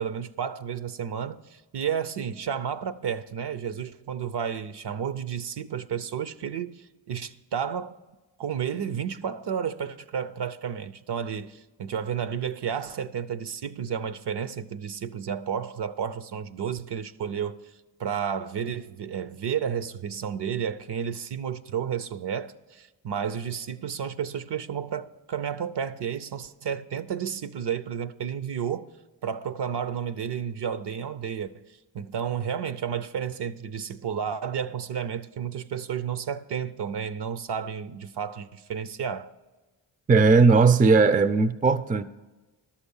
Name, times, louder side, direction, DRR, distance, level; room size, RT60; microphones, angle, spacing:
voice 1, 0.0-7.9 8.4-17.6 18.0-28.9 29.2-39.3, right 8 dB, 60° right, 0.7 m, -32 dB
voice 2, 40.1-42.0, right 4 dB, 20° right, 0.4 m, -18 dB
11.5 x 7.2 x 5.5 m
cardioid pair, 55°, 47 cm